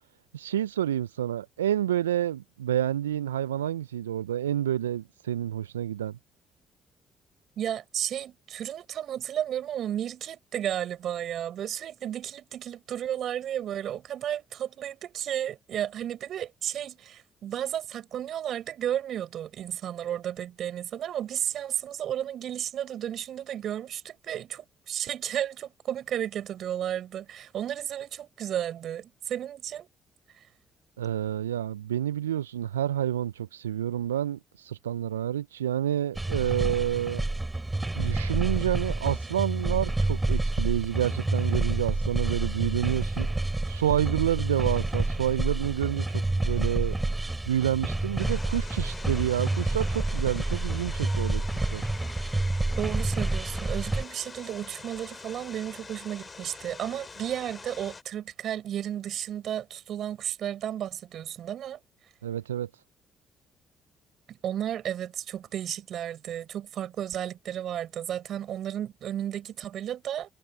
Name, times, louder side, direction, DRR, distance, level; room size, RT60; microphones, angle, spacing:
voice 1, 0.3-6.2 31.0-37.2 37.9-51.9 62.2-62.7, right 11 dB, 85° right, 0.4 m, -29 dB
voice 2, 7.6-29.9 30.4-30.5 52.8-61.8 64.3-70.3, right 10 dB, 60° right, 4.5 m, -33 dB
sound 1, 36.1-54.0, right 2 dB, 15° right, 5.5 m, -28 dB
sound 2, 48.2-58.0, left 4 dB, 30° left, 4.5 m, -45 dB
figure-of-eight pair, 45°, 0 cm